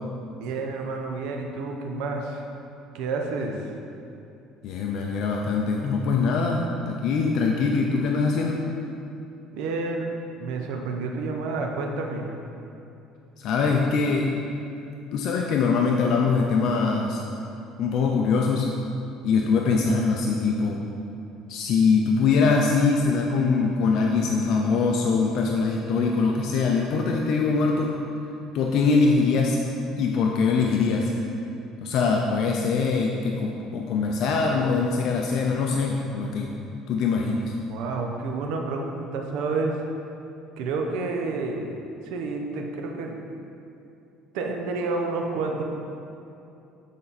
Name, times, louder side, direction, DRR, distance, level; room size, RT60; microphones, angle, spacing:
voice 1, 0.3-2.4 2.9-3.7 9.5-12.3 37.7-39.8 40.6-41.7 42.1-43.2 44.3-45.6, right 3 dB, 80° right, 2 dB, 1.0 m, -29 dB
voice 2, 4.6-8.6 13.4-14.3 15.1-17.2 17.8-18.7 19.2-20.8 21.5-28.0 28.5-29.6 30.0-31.1 31.8-36.5 36.9-37.5, left 4 dB, 60° left, 0 dB, 0.6 m, -23 dB
9.3 x 5.2 x 4.3 m, 2.7 s
cardioid pair, 130°, 0 cm